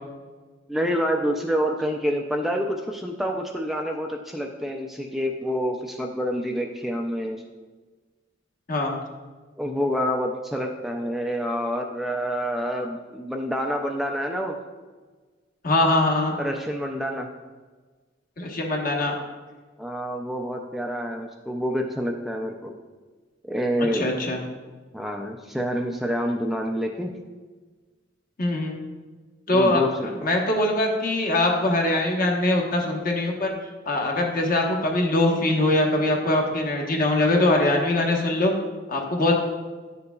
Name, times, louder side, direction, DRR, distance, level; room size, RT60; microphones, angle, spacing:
voice 1, 0.7-7.4 9.6-14.6 16.4-17.3 19.8-22.7 23.4-24.1 24.9-27.1 29.5-30.2, equal, ahead, 2 dB, 0.4 m, -27 dB
voice 2, 15.6-16.3 18.4-19.1 23.8-24.4 28.4-28.8 29.5-29.8 30.2-33.5 33.9-38.5 38.9-39.3, left 1 dB, 50° left, 0 dB, 1.2 m, -22 dB
10.5 x 6.6 x 2.3 m, 1.4 s
head